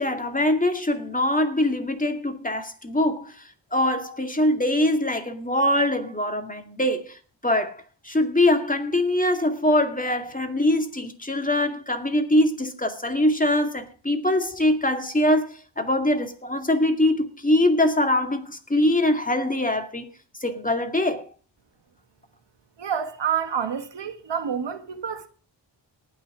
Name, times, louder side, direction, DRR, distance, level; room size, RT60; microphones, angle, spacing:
voice 1, 0.0-3.4 3.7-20.1 20.4-21.3, left 1 dB, 20° left, 2.2 m, -23 dB
voice 2, 22.8-25.3, right 8 dB, 65° right, 1.5 m, -28 dB
19.0 x 6.3 x 4.9 m
cardioid pair, 70°, 45 cm